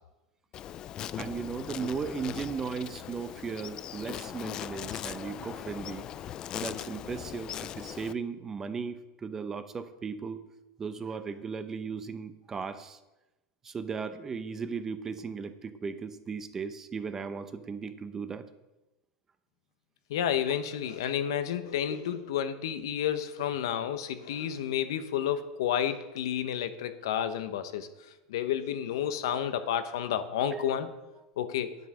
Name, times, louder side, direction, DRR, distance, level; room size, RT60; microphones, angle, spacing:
Insect, 0.5-8.1, left 11 dB, 35° left, 0.4 m, -39 dB
voice 1, 1.2-10.4 10.8-13.0 13.6-18.5 30.5-30.9, right 5 dB, 20° right, 10 dB, 0.7 m, -37 dB
voice 2, 20.1-27.9 28.3-30.9 31.4-31.7, left 9 dB, 85° left, 10 dB, 0.9 m, -30 dB
9.6 x 8.0 x 6.0 m, 1.0 s
supercardioid pair, 135°, 2 cm